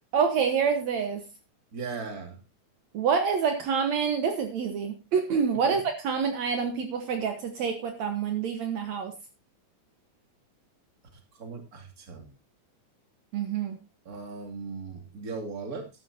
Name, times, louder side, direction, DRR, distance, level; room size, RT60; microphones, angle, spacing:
voice 1, 0.1-1.3 2.9-9.1 13.3-13.8, right 6 dB, 65° right, 6 dB, 2.4 m, -27 dB
voice 2, 1.7-2.4 5.6-5.8 11.4-12.2 14.1-15.9, right 4 dB, 30° right, 4 dB, 2.7 m, -38 dB
13.5 x 12.0 x 2.8 m, 0.25 s
omnidirectional pair, 3.5 m